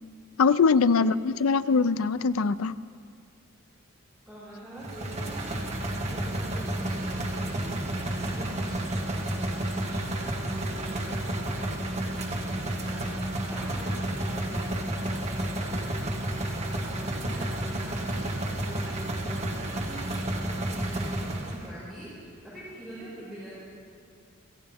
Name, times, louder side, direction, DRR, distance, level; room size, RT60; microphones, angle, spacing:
voice 1, 0.4-2.7, left 5 dB, 80° left, 14 dB, 0.5 m, -22 dB
voice 2, 4.2-5.4 6.1-7.7 7.9-16.0 16.3-23.5, right 1 dB, ahead, -12 dB, 5.1 m, -44 dB
sound 1, 4.8-21.7, right 1 dB, 35° right, 1.6 m, -31 dB
26.5 x 15.5 x 3.5 m, 2.3 s
head